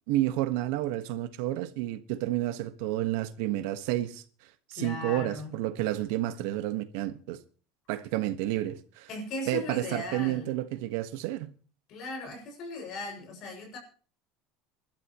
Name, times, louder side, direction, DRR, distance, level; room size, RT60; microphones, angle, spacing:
voice 1, 0.1-4.2 4.7-7.4 7.9-9.1 9.5-11.5, right 14 dB, 75° right, 1.4 m, -30 dB
voice 2, 4.8-5.5 9.1-10.5 11.9-13.8, left 2 dB, 50° left, 6.5 m, -37 dB
26.5 x 12.0 x 3.1 m
cardioid pair, 150°, 0 cm